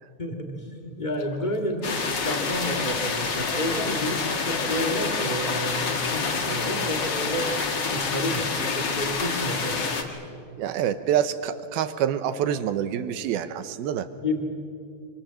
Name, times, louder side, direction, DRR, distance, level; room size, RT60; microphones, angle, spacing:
voice 1, 0.2-10.2 14.0-14.4, equal, 30° left, 2 dB, 0.8 m, -30 dB
sound 1, 1.1-8.1, left 4 dB, 65° left, 3.5 m, -44 dB
sound 2, 1.8-10.0, left 4 dB, 45° left, 1.4 m, -27 dB
voice 2, 10.6-14.1, right 9 dB, 75° right, 11 dB, 2.7 m, -26 dB
25.5 x 25.5 x 7.5 m, 2.4 s
omnidirectional pair, 4.6 m